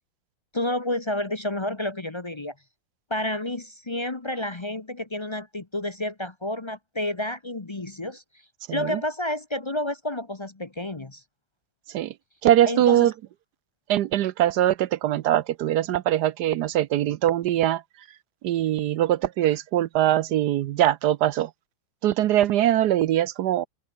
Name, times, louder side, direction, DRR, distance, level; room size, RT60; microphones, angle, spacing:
voice 1, 0.5-2.5 3.1-8.2 8.7-11.2 12.7-13.1, left 1 dB, 25° left, 0.6 m, -30 dB
voice 2, 8.7-9.0 11.9-12.1 12.4-13.1 13.9-17.8 18.4-21.5 22.0-23.7, right 12 dB, 70° right, 1.1 m, -22 dB
open air
omnidirectional pair, 2.1 m